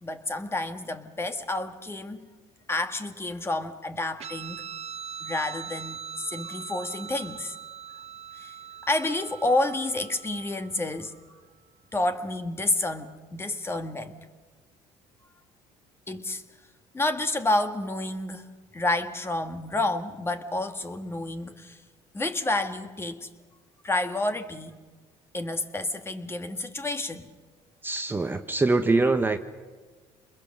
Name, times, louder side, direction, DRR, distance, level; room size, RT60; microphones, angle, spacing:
voice 1, 0.0-2.3 2.7-4.7 5.2-7.6 8.4-8.5 8.9-11.2 11.9-14.2 16.1-16.4 16.9-21.8 22.1-23.3 23.8-24.8 25.3-27.3, left 2 dB, 20° left, 8 dB, 1.6 m, -29 dB
Guitar, 4.2-11.1, right 8 dB, 55° right, 1.6 m, -41 dB
voice 2, 27.8-29.4, right 3 dB, 15° right, 7 dB, 1.0 m, -23 dB
27.5 x 21.5 x 6.5 m, 1.4 s
supercardioid pair, 90°, 13 cm